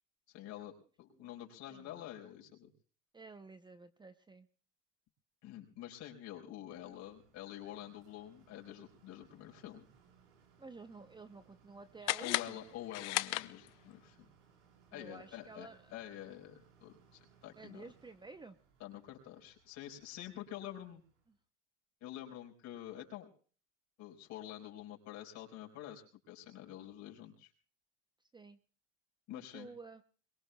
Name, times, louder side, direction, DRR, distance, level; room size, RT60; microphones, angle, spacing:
voice 1, 0.3-0.7 1.0-2.7 5.4-9.9 12.2-14.3 14.9-17.9 18.8-21.0 22.0-23.3 24.0-27.5 29.3-29.7, left 12 dB, 55° left, 0 dB, 4.9 m, -48 dB
voice 2, 3.1-4.5 10.6-12.7 14.9-15.9 17.6-18.6 28.3-28.6 29.5-30.0, right 3 dB, 15° right, 10 dB, 0.7 m, -52 dB
sound 1, 6.7-21.4, right 6 dB, 85° right, 4.7 m, -67 dB
sound 2, 12.0-14.0, left 19 dB, 85° left, 0.6 m, -36 dB
22.5 x 22.5 x 2.3 m, 0.42 s
supercardioid pair, 105°, 34 cm